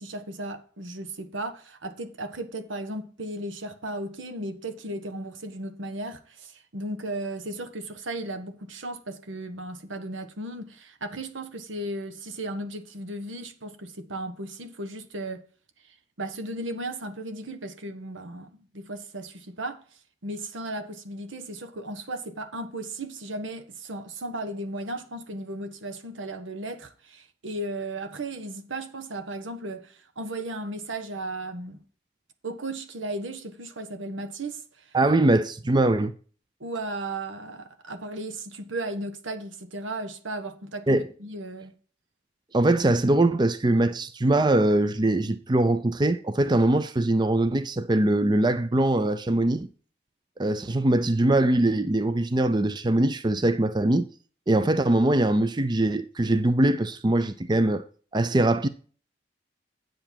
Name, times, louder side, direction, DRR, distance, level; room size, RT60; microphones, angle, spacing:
voice 1, 0.0-15.4 16.2-19.8 20.2-31.8 32.4-34.9 36.6-41.7, right 2 dB, 85° right, 1.4 m, -35 dB
voice 2, 34.9-36.1 40.9-41.1 42.5-49.7 50.4-54.1 54.5-57.8 58.1-58.7, right 1 dB, 25° right, 0.5 m, -22 dB
8.8 x 7.9 x 4.5 m
head